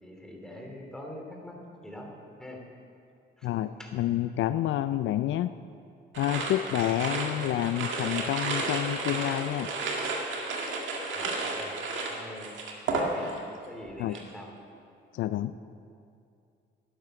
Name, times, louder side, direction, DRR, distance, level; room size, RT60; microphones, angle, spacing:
voice 1, 0.0-1.5 1.8-2.1 2.4-2.6 3.4-3.5 3.8-3.9 11.1-11.7 12.1-12.5 12.9-13.3 13.7-14.5, left 1 dB, 5° left, 0 dB, 2.8 m, -43 dB
voice 2, 3.4-5.5 6.2-9.7 14.0-14.1 15.1-15.5, left 13 dB, 75° left, 12 dB, 0.4 m, -28 dB
sound 1, 6.1-13.6 13.8-14.3, right 3 dB, 75° right, 1.9 m, -32 dB
12.0 x 10.0 x 6.5 m, 2.5 s
cardioid pair, 90°, 20 cm